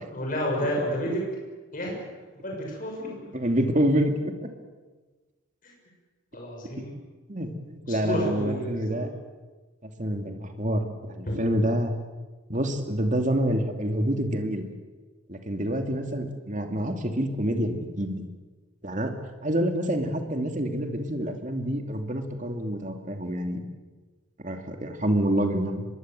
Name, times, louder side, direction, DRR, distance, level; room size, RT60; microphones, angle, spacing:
voice 1, 0.1-1.2 1.7-2.0 2.3-3.3 5.6-5.7 6.3-7.0 7.8-9.1 11.3-11.4, equal, 40° left, -1 dB, 6.8 m, -30 dB
voice 2, 3.3-4.3 6.8-6.9 7.3-9.1 9.8-11.9 12.5-14.6 15.3-18.2 18.8-19.1 19.4-23.6 24.4-25.9, right 1 dB, 35° right, 5 dB, 2.7 m, -27 dB
24.5 x 22.0 x 7.8 m, 1.3 s
head